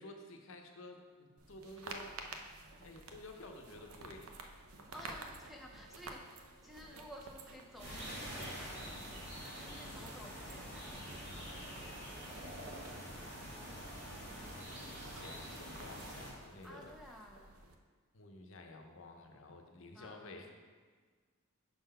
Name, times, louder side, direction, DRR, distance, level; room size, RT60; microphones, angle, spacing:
voice 1, 0.0-2.2 2.7-4.3 14.1-16.9 18.1-20.5, left 2 dB, 60° left, 3 dB, 0.7 m, -52 dB
sound 1, 1.4-17.8, right 3 dB, 70° right, 0.6 m, -53 dB
voice 2, 4.9-9.3 9.6-12.0 16.6-17.6 19.9-20.4, equal, ahead, -1 dB, 0.4 m, -54 dB
sound 2, 7.8-16.3, equal, 50° right, 1.7 m, -46 dB
5.7 x 3.9 x 5.4 m, 1.5 s
head